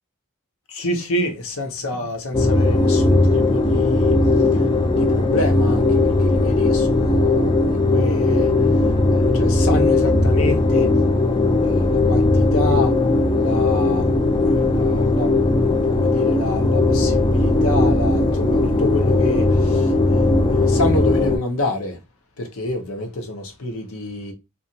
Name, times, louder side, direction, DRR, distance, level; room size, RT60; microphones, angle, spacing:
voice 1, 0.7-4.2 4.5-8.5 9.1-10.9 11.6-12.9 13.4-14.1 14.5-15.3 15.6-22.0 22.4-24.3, left 1 dB, 65° left, 0.7 m, -28 dB
sound 1, 2.3-21.4, left 2 dB, 20° left, 0.4 m, -18 dB
2.8 x 2.3 x 2.6 m
head